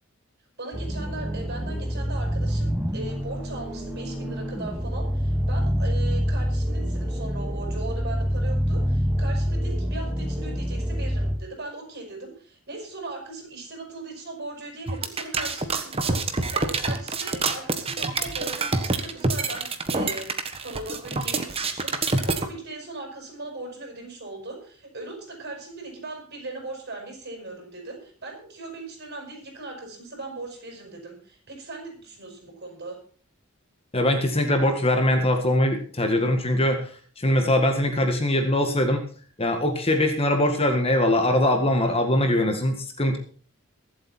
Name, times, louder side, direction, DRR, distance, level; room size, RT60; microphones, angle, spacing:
voice 1, 0.6-16.2 16.5-33.0, right 2 dB, 50° right, 2 dB, 6.0 m, -39 dB
sound 1, 0.7-11.4, equal, 10° right, 2.2 m, -26 dB
sound 2, 14.9-22.5, right 3 dB, 25° right, 1.4 m, -26 dB
voice 2, 33.9-36.9 37.2-39.0 39.4-43.2, left 1 dB, 25° left, 5 dB, 1.8 m, -22 dB
22.5 x 8.0 x 4.4 m, 0.43 s
head